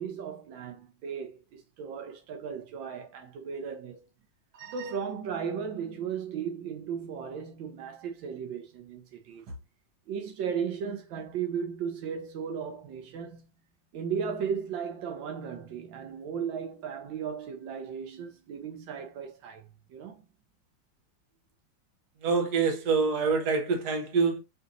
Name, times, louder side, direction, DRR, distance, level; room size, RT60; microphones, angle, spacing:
voice 1, 0.0-4.0 4.7-9.4 10.1-13.5 13.9-20.2, right 7 dB, 85° right, 1.5 m, -36 dB
voice 2, 22.2-24.4, right 5 dB, 60° right, 1.5 m, -26 dB
5.4 x 2.9 x 2.5 m
omnidirectional pair, 2.0 m